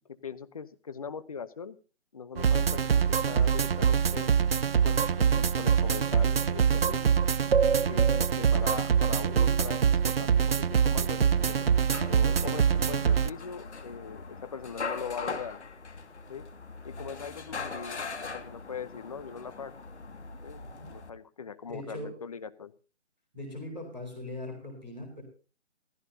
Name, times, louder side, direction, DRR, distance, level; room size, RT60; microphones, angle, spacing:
voice 1, 0.1-1.8 2.1-4.3 4.8-7.2 7.8-11.7 12.0-15.6 16.3-16.5 16.8-19.7 20.4-22.7, left 6 dB, 30° left, 13 dB, 0.8 m, -41 dB
sound 1, 2.4-13.3, right 7 dB, 55° right, 0.5 m, -24 dB
sound 2, 11.3-21.1, left 4 dB, 65° left, 2.2 m, -41 dB
voice 2, 21.7-22.1 23.3-25.2, left 1 dB, ahead, -13 dB, 0.6 m, -40 dB
16.0 x 15.5 x 2.8 m, 0.36 s
figure-of-eight pair, 155°, 36 cm